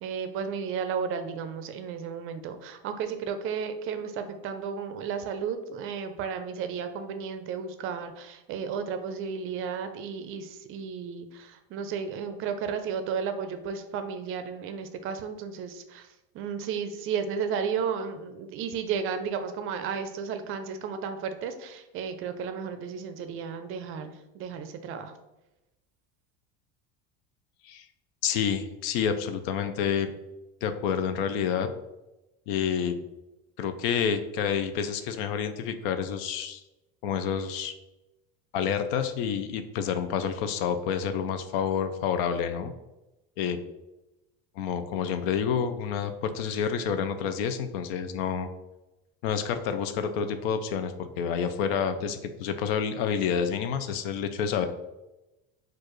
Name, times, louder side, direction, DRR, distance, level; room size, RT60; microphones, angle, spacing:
voice 1, 0.0-16.1 16.3-25.1, right 6 dB, 45° right, 9 dB, 0.5 m, -33 dB
voice 2, 28.2-30.1 30.6-31.7 32.5-33.0 33.6-36.6 37.0-37.7 38.5-42.7 43.4-43.6 44.6-48.5 49.2-54.7, left 7 dB, 75° left, 9 dB, 0.5 m, -28 dB
4.5 x 2.5 x 3.0 m, 0.99 s
supercardioid pair, 130°, 30 cm